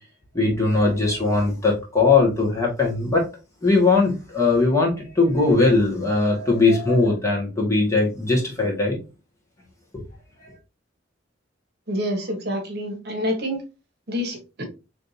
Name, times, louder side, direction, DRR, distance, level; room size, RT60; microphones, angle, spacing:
voice 1, 0.3-3.2 3.6-9.0 9.9-10.0 10.4-10.5, left 3 dB, 15° left, 1.6 m, -20 dB
voice 2, 11.9-13.6 14.1-14.6, equal, 55° right, 1.1 m, -27 dB
4.9 x 3.3 x 2.7 m
head